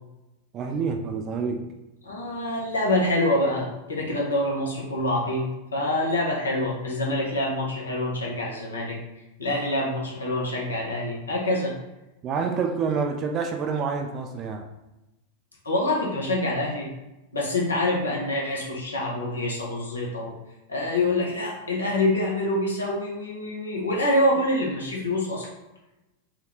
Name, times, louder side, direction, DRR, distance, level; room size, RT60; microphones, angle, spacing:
voice 1, 0.5-1.7 12.2-14.7, right 5 dB, 30° right, 4 dB, 0.3 m, -27 dB
voice 2, 2.0-9.0 9.4-11.7 15.6-16.9 17.3-20.4 20.7-25.5, left 1 dB, 75° left, -2 dB, 0.7 m, -26 dB
3.5 x 2.2 x 3.2 m, 0.97 s
figure-of-eight pair, 90°, 0 cm